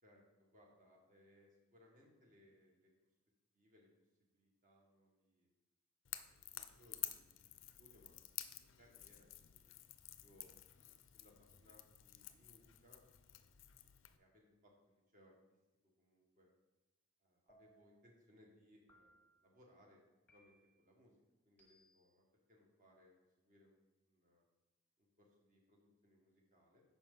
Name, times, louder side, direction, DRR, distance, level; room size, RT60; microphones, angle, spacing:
voice 1, 0.0-2.9 3.5-3.9 4.2-5.5 6.1-9.7 10.2-13.5 14.1-15.3 16.0-16.5 17.2-20.0 20.3-23.8 24.0-24.4 25.0-26.8, left 1 dB, 40° right, -1 dB, 1.5 m, -69 dB
Crackle / Crack, 6.0-14.2, left 14 dB, 60° left, 0.4 m, -51 dB
sound 1, 17.5-18.1 18.9-19.5 20.3-20.9 21.6-22.2, right 1 dB, 10° left, 0.9 m, -70 dB
8.7 x 5.6 x 3.8 m, 1.1 s
head